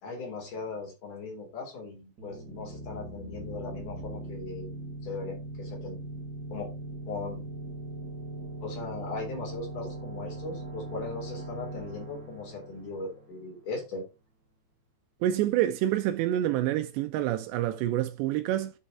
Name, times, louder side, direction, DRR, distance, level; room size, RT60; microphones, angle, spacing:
voice 1, 0.0-4.7 5.0-6.1 6.5-6.7 7.1-7.5 8.6-14.0, left 3 dB, 50° left, 4.9 m, -38 dB
sound 1, 2.2-13.7, right 1 dB, 35° right, 1.7 m, -40 dB
voice 2, 15.2-18.7, right 13 dB, 80° right, 2.8 m, -27 dB
10.0 x 5.1 x 4.2 m
omnidirectional pair, 5.1 m